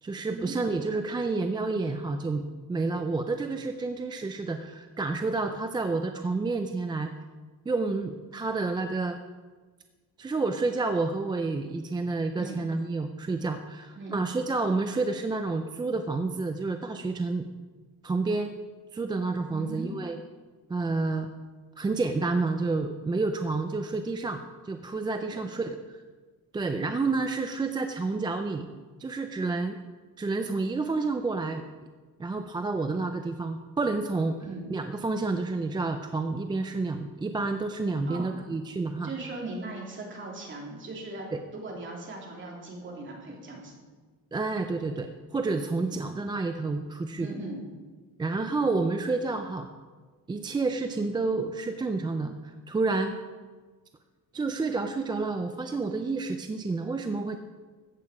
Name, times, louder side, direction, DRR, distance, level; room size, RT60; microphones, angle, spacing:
voice 1, 0.0-2.4 2.7-7.1 7.7-9.2 10.2-17.5 18.0-18.5 18.9-20.2 20.7-21.3 21.8-25.8 26.5-28.7 29.0-29.8 30.2-31.6 32.2-34.4 34.7-39.1 41.3-41.4 44.3-47.3 48.2-49.7 50.3-53.2 54.3-57.4, right 3 dB, 15° right, 6 dB, 0.3 m, -29 dB
voice 2, 19.5-19.9 25.3-25.4 34.4-34.7 38.1-38.3 39.0-41.3 41.5-43.7 45.8-46.0 47.2-47.6, right 2 dB, 30° right, -2 dB, 2.8 m, -39 dB
14.0 x 8.6 x 4.8 m, 1.4 s
cardioid pair, 170°, 36 cm